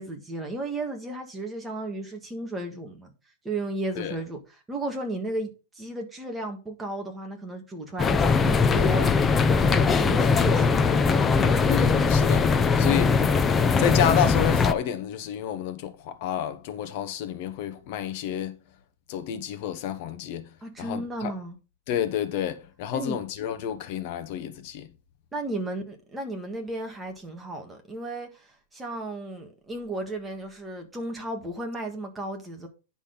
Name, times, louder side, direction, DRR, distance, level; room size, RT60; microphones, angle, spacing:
voice 1, 0.0-3.1 3.4-10.8 20.6-21.6 22.9-23.2 25.3-32.7, right 2 dB, 10° right, 1.6 m, -34 dB
sound 1, 8.0-14.7, left 5 dB, 15° left, 0.6 m, -21 dB
voice 2, 11.7-13.2 13.8-18.6 19.1-20.5 20.8-21.3 21.9-24.9, left 9 dB, 40° left, 1.0 m, -29 dB
10.0 x 6.1 x 3.9 m
supercardioid pair, 170°, 0 cm